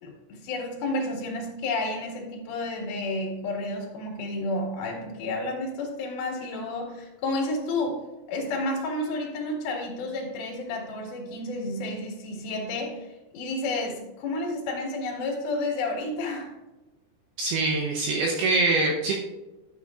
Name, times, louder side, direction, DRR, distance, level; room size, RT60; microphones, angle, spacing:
voice 1, 0.0-8.0 8.3-16.5, left 2 dB, 60° left, 0 dB, 3.2 m, -31 dB
voice 2, 17.4-19.2, right 3 dB, 80° right, -1 dB, 2.3 m, -24 dB
11.5 x 8.1 x 2.4 m, 1.1 s
omnidirectional pair, 5.7 m